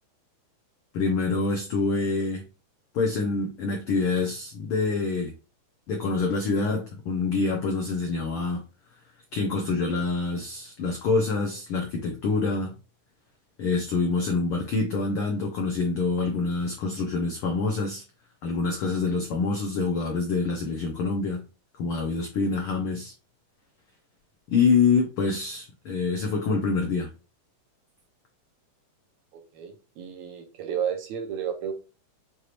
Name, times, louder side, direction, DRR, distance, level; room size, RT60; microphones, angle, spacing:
voice 1, 0.9-2.4 2.9-5.3 5.9-8.6 9.3-12.7 13.6-18.0 18.4-21.4 21.8-23.1 24.5-27.1, left 4 dB, 80° left, 1.2 m, -26 dB
voice 2, 29.3-31.7, right 8 dB, 75° right, 2.3 m, -32 dB
6.6 x 3.0 x 2.5 m
omnidirectional pair, 3.6 m